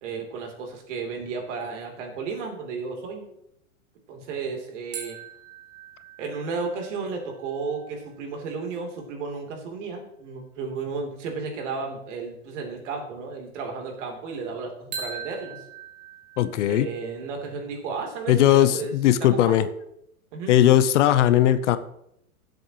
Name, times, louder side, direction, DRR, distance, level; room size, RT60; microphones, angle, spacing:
voice 1, 0.0-3.2 4.1-5.2 6.2-15.6 16.7-18.9 19.3-19.7 20.3-20.5, right 4 dB, 55° right, 2 dB, 3.2 m, -33 dB
sound 1, 4.9-8.5 14.9-17.6, right 5 dB, 25° right, 1.8 m, -42 dB
voice 2, 16.4-16.9 18.3-19.7 20.5-21.8, left 12 dB, 55° left, 13 dB, 0.8 m, -18 dB
16.5 x 7.9 x 3.0 m, 0.77 s
hypercardioid pair, 145°, 43 cm